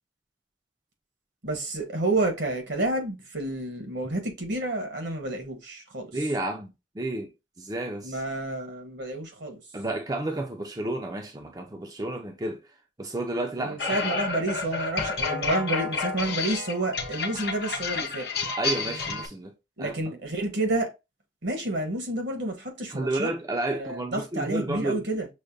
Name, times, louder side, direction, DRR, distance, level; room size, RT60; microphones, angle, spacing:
voice 1, 1.4-6.1 8.0-9.6 13.6-18.3 19.8-20.9 21.4-23.3 23.7-25.3, right 2 dB, 70° right, 1.2 m, -29 dB
voice 2, 6.1-7.3 7.6-8.2 9.7-12.7 13.0-14.0 18.6-19.5 19.8-20.0 22.9-25.0, right 2 dB, 20° right, 0.4 m, -31 dB
sound 1, 13.8-19.3, left 4 dB, 55° left, 0.8 m, -30 dB
6.3 x 2.1 x 2.5 m
head